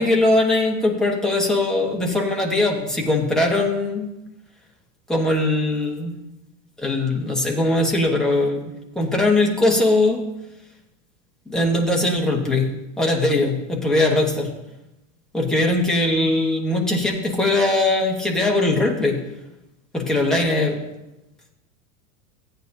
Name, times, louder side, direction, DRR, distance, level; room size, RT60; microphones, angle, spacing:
voice 1, 0.0-4.1 5.1-6.1 6.8-10.2 11.5-12.7 13.0-14.5 15.3-19.2 19.9-20.8, left 2 dB, ahead, -2 dB, 1.1 m, -20 dB
16.0 x 9.1 x 2.7 m, 0.94 s
supercardioid pair, 165°, 41 cm